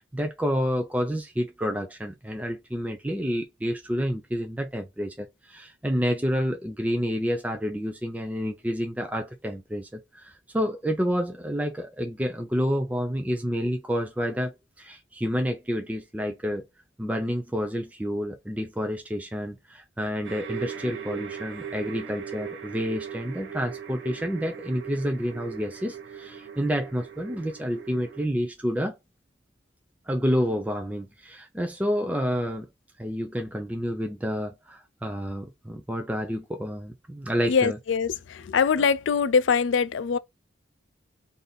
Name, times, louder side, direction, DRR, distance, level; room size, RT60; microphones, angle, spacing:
voice 1, 0.0-16.7 17.0-29.0 30.1-32.7 33.0-37.8 38.8-38.9, equal, 10° right, 0.4 m, -29 dB
sound 1, 20.2-28.3, right 7 dB, 70° right, 0.8 m, -39 dB
voice 2, 37.5-40.2, left 6 dB, 75° left, 0.4 m, -23 dB
3.9 x 2.6 x 3.4 m
head